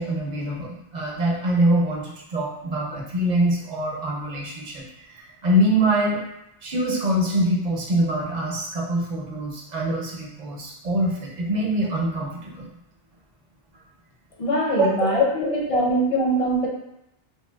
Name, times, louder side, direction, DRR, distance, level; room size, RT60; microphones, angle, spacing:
voice 1, 0.0-6.2 6.6-12.7 14.8-14.9, right 1 dB, 50° right, -3 dB, 0.7 m, -24 dB
voice 2, 14.4-16.7, equal, 40° left, -2 dB, 0.5 m, -22 dB
3.4 x 2.2 x 2.2 m, 0.84 s
omnidirectional pair, 1.0 m